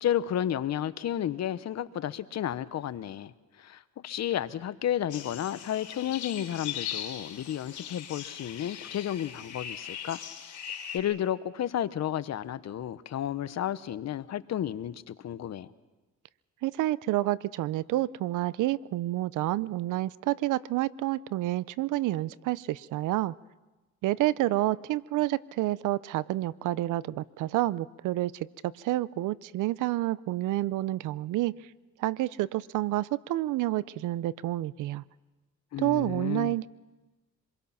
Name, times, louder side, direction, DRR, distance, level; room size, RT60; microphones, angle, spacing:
voice 1, 0.0-10.2 10.9-15.7 35.7-36.6, left 11 dB, 60° left, 14 dB, 0.9 m, -32 dB
sound 1, 5.1-11.0, left 9 dB, 75° left, 4.0 m, -40 dB
voice 2, 16.6-23.3 24.0-31.5 32.0-35.0 35.8-36.7, right 16 dB, 85° right, 19 dB, 0.6 m, -29 dB
26.5 x 21.5 x 5.9 m, 1.1 s
cardioid pair, 90°, 30 cm